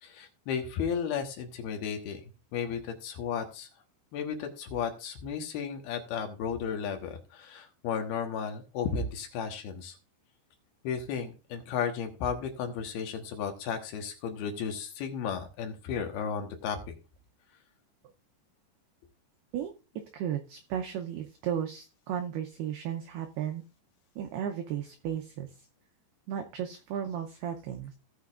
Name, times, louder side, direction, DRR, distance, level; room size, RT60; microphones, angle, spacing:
voice 1, 0.0-2.2 2.5-3.7 4.1-10.0 10.8-16.8, left 7 dB, 65° left, 5 dB, 2.7 m, -34 dB
voice 2, 20.1-23.6 24.2-25.7 26.3-27.9, right 9 dB, 90° right, 4 dB, 2.2 m, -34 dB
17.5 x 6.3 x 2.5 m, 0.32 s
omnidirectional pair, 5.6 m